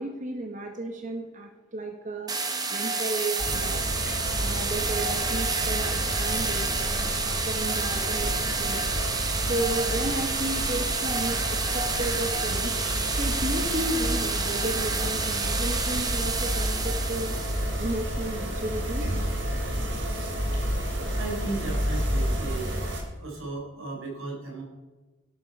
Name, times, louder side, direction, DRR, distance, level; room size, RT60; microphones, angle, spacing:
voice 1, 0.0-2.3 2.7-3.8 4.4-8.3 8.6-8.8 9.4-12.7 13.1-17.4 17.8-19.1, right 1 dB, 40° right, 3 dB, 1.4 m, -33 dB
sound 1, 2.3-17.8, right 4 dB, 20° right, 1.2 m, -29 dB
sound 2, 3.4-23.0, equal, 60° right, 3.1 m, -30 dB
voice 2, 21.2-22.8 23.2-24.6, right 3 dB, 85° right, -1 dB, 4.5 m, -35 dB
12.5 x 12.5 x 4.7 m, 1.2 s
head